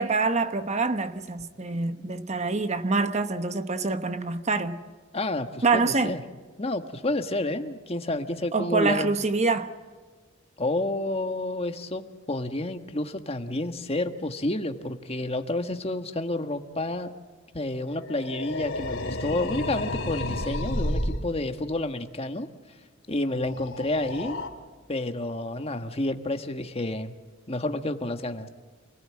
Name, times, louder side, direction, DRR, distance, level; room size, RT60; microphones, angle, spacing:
voice 1, 0.0-4.8 5.6-6.1 8.5-9.7, right 3 dB, 35° right, 1.0 m, -25 dB
voice 2, 5.1-6.2 6.6-9.2 10.6-17.1 17.5-22.5 23.1-24.4 24.9-27.1 27.5-28.5, left 2 dB, 30° left, 1.5 m, -30 dB
sound 1, 17.9-21.3 23.3-24.5, left 1 dB, 70° left, 2.9 m, -31 dB
28.0 x 19.0 x 8.8 m
head